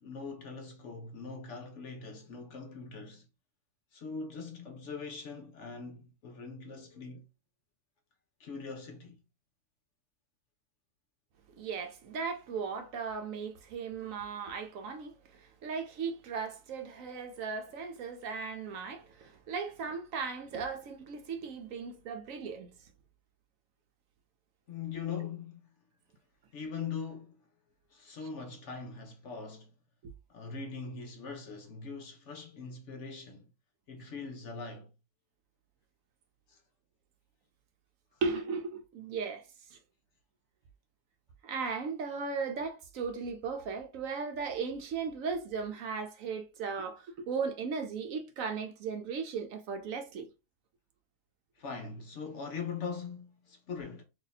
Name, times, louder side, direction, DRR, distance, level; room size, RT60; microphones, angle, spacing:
voice 1, 0.0-3.3 3.9-7.2 8.4-9.2 24.7-25.6 26.5-27.4 27.9-29.7 30.3-33.5 33.9-34.9 36.5-36.6 51.6-54.0, left 5 dB, 60° left, 0.8 m, -41 dB
voice 2, 11.6-22.7 38.2-39.8 41.4-50.3, right 5 dB, 70° right, 0.9 m, -37 dB
2.7 x 2.7 x 3.9 m
omnidirectional pair, 1.6 m